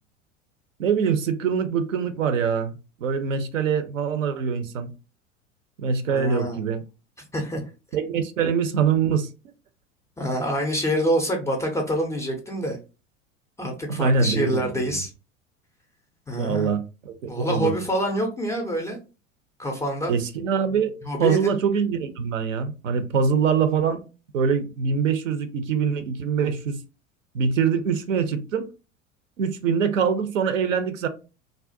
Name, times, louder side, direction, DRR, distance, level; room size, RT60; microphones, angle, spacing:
voice 1, 0.8-4.9 5.8-6.8 7.9-9.3 13.9-14.6 14.9-15.0 16.4-17.7 20.1-20.9 21.2-24.0 24.3-26.8 27.3-28.7 29.4-31.1, right 6 dB, 80° right, 0.5 m, -24 dB
voice 2, 6.1-6.6 7.3-7.6 10.2-12.8 13.6-15.1 16.3-16.7 17.3-19.0 19.6-20.1 21.0-21.6, equal, 10° left, 0.3 m, -26 dB
2.4 x 2.0 x 2.5 m
figure-of-eight pair, 80°, 39 cm